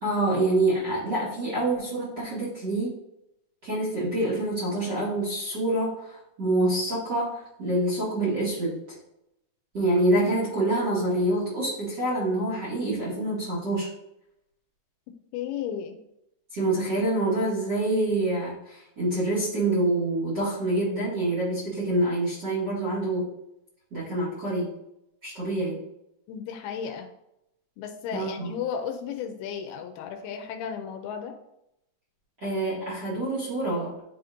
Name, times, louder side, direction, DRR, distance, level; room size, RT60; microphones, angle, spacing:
voice 1, 0.0-2.9 3.6-8.8 9.7-13.9 16.5-23.3 23.9-24.7 25.2-25.8 28.1-28.5 32.4-34.0, right 1 dB, 40° right, -7 dB, 1.7 m, -26 dB
voice 2, 15.3-16.0 26.3-27.1 27.8-31.3, left 7 dB, 80° left, 5 dB, 2.4 m, -34 dB
10.5 x 4.2 x 2.6 m, 0.84 s
omnidirectional pair, 4.7 m